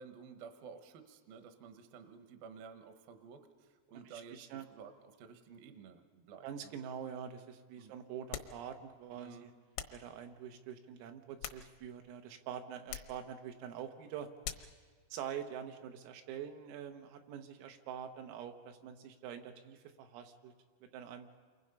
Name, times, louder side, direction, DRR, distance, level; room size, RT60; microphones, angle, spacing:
voice 1, 0.0-6.8 7.8-7.9 9.1-9.5, right 6 dB, 70° right, 7 dB, 2.4 m, -53 dB
voice 2, 4.1-4.7 6.4-9.5 9.9-14.3 15.1-20.5 20.9-21.4, right 8 dB, 90° right, 5 dB, 4.0 m, -45 dB
sound 1, 8.3-8.6 9.8-10.1 11.1-12.0 12.9-13.2 14.4-14.8, left 11 dB, 80° left, 3.5 m, -44 dB
29.0 x 23.5 x 5.5 m, 1.5 s
omnidirectional pair, 5.8 m